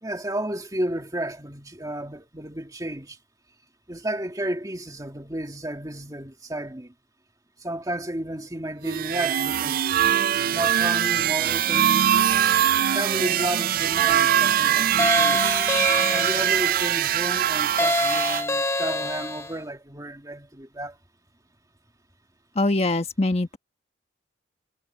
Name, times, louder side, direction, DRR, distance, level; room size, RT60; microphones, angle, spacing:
voice 1, 0.0-3.2 3.9-6.9 7.6-10.0 10.5-12.1 12.9-15.5 16.1-21.0, right 1 dB, 20° right, 2.1 m, -32 dB
sound 1, 8.8-18.4, right 10 dB, 50° right, 0.4 m, -22 dB
sound 2, 15.0-16.7 17.8-19.6, left 2 dB, 15° left, 0.6 m, -26 dB
voice 2, 22.5-23.6, left 2 dB, 35° left, 1.3 m, -23 dB
head